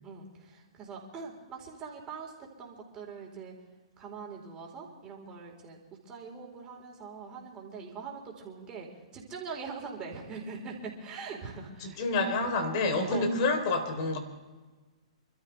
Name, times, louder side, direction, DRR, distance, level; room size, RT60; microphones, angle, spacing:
voice 1, 0.0-3.5 4.0-5.8 6.1-8.9 9.1-12.0 13.1-13.3, right 5 dB, 25° right, -1 dB, 4.2 m, -42 dB
voice 2, 11.8-14.2, left 3 dB, 45° left, 5 dB, 3.7 m, -28 dB
28.0 x 13.5 x 3.4 m, 1.3 s
hypercardioid pair, 135°, 3 cm